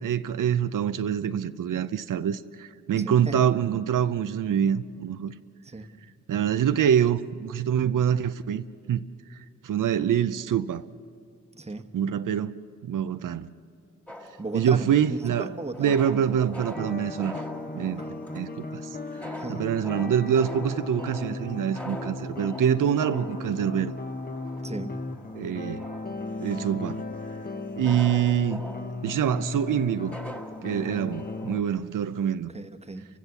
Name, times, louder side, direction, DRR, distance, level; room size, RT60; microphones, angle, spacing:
voice 1, 0.0-5.3 6.3-9.0 9.6-10.9 11.9-13.5 14.5-15.5 15.8-17.4 17.7-18.0 18.3-18.9 19.3-23.9 25.3-25.8 26.4-27.0 27.8-28.6 29.0-30.2 30.6-32.5, right 9 dB, 90° right, 0.6 m, -25 dB
voice 2, 3.0-3.4 5.6-5.9 11.5-11.8 14.4-16.0 17.9-18.1 19.4-19.6 24.6-24.9 32.5-33.1, right 2 dB, 20° right, 1.1 m, -36 dB
sound 1, 14.1-31.6, equal, 5° left, 1.5 m, -44 dB
sound 2, 16.7-31.6, left 3 dB, 30° left, 1.0 m, -36 dB
29.5 x 15.5 x 7.0 m
cardioid pair, 75°, 31 cm